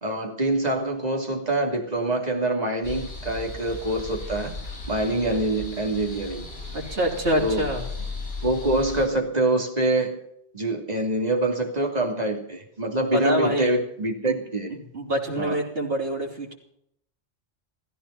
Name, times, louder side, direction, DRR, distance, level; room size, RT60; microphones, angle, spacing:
voice 1, 0.0-4.5 4.9-6.5 7.4-7.7 8.4-10.2 10.5-14.8 15.4-15.6, right 1 dB, 35° right, 1 dB, 2.9 m, -25 dB
sound 1, 2.8-9.1, left 3 dB, 60° left, 5.3 m, -36 dB
voice 2, 6.7-7.8 13.1-13.7 14.3-14.4 14.7-16.5, equal, 60° right, -1 dB, 3.8 m, -26 dB
16.0 x 14.5 x 5.8 m, 0.72 s
omnidirectional pair, 1.2 m